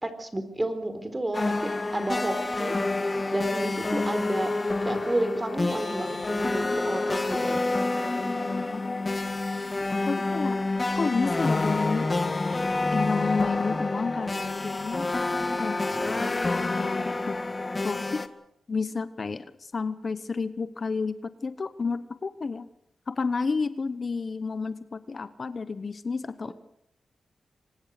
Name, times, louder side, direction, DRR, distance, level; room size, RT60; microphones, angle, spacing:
voice 1, 0.0-4.5 4.8-7.6 15.9-16.3 26.4-26.5, right 1 dB, 20° right, 10 dB, 4.1 m, -31 dB
sound 1, 1.3-18.3, left 2 dB, 30° left, 1.8 m, -28 dB
voice 2, 8.3-8.8 10.1-10.6 11.0-12.2 12.9-15.1 15.6-17.4 17.8-18.2 18.7-22.7 23.1-26.5, left 4 dB, 45° left, 13 dB, 1.0 m, -31 dB
25.0 x 20.5 x 6.6 m, 0.74 s
cardioid pair, 90°, 0 cm